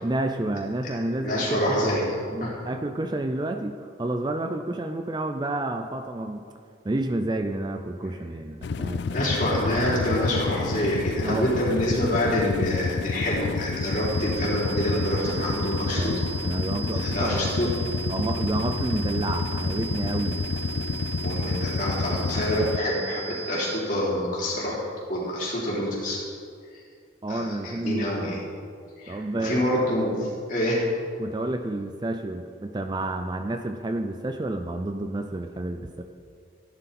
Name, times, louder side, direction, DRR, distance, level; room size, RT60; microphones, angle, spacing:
voice 1, 0.0-1.9 2.3-6.5 6.8-9.0 11.2-11.5 15.9-17.7 18.1-20.4 27.2-28.4 29.1-29.6 31.2-36.0, right 1 dB, 20° right, 6 dB, 0.4 m, -30 dB
voice 2, 1.2-2.1 2.4-2.5 9.1-16.3 16.9-17.7 21.2-24.8 25.1-26.2 26.7-26.8 27.3-28.4 29.0-30.8, equal, 40° left, -6 dB, 3.8 m, -26 dB
sound 1, 8.6-22.8, left 4 dB, 60° left, 0.4 m, -29 dB
sound 2, 13.8-23.8, right 5 dB, 70° right, 3.2 m, -37 dB
15.5 x 11.0 x 4.2 m, 2.3 s
head